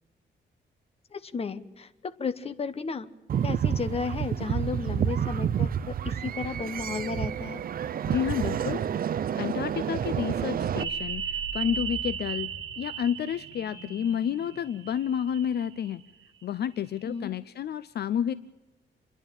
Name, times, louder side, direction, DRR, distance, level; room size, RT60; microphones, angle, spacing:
voice 1, 1.1-3.1 3.4-7.6 17.0-17.3, left 5 dB, 30° left, 11 dB, 1.1 m, -33 dB
sound 1, 3.3-10.8, right 8 dB, 50° right, 0.6 m, -29 dB
voice 2, 8.1-8.8 9.4-16.0 16.4-18.3, left 9 dB, 60° left, 15 dB, 0.6 m, -30 dB
sound 2, 10.8-16.1 16.4-16.5, right 7 dB, 85° right, 2.7 m, -36 dB
28.0 x 11.0 x 8.8 m, 1.1 s
wide cardioid pair, 150°, 19 cm